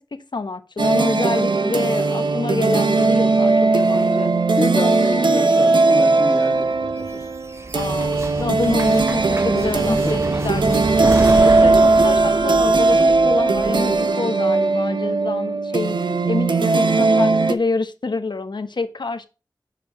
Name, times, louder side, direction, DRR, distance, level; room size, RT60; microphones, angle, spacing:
voice 1, 0.0-4.3 7.7-10.8 11.2-19.3, left 3 dB, 75° left, 1.0 m, -27 dB
sound 1, 0.8-17.5, right 3 dB, 90° right, 0.7 m, -18 dB
voice 2, 4.5-7.3 9.8-10.2, left 2 dB, 45° left, 1.8 m, -27 dB
sound 2, 6.7-14.0, right 2 dB, 35° right, 0.7 m, -30 dB
7.6 x 6.7 x 2.9 m
wide cardioid pair, 50°, 8 cm